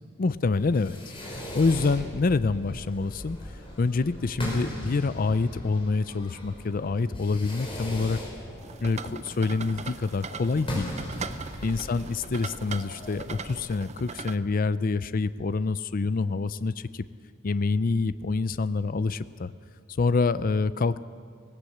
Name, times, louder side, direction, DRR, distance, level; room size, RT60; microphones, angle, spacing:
voice 1, 0.2-1.0 1.2-3.4 3.8-8.2 8.8-10.9 11.6-16.7 17.4-19.5 20.0-21.0, left 4 dB, 45° left, 15 dB, 0.5 m, -26 dB
Fireworks, 0.5-13.6, equal, 25° left, 5.3 m, -39 dB
sound 1, 8.6-14.4, right 5 dB, 35° right, 0.6 m, -40 dB
18.0 x 18.0 x 8.0 m, 2.1 s
head